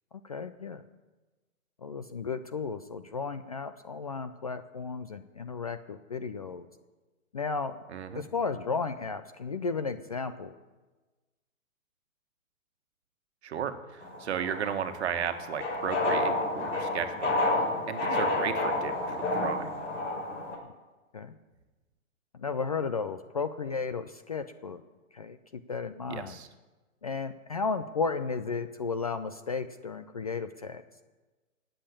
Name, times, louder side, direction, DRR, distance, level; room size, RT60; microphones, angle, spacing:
voice 1, 0.2-0.8 1.8-6.7 7.3-7.8 8.1-10.5 21.1-21.3 22.4-24.8 25.1-26.4 27.0-30.8, left 4 dB, 30° left, 10 dB, 0.4 m, -34 dB
voice 2, 7.9-8.2 13.4-17.6 17.9-19.7 26.1-26.5, right 8 dB, 50° right, 8 dB, 1.7 m, -35 dB
sound 1, 14.0-20.6, left 2 dB, 55° left, 5.7 m, -30 dB
18.5 x 7.8 x 8.5 m, 1.2 s
hypercardioid pair, 150°, 41 cm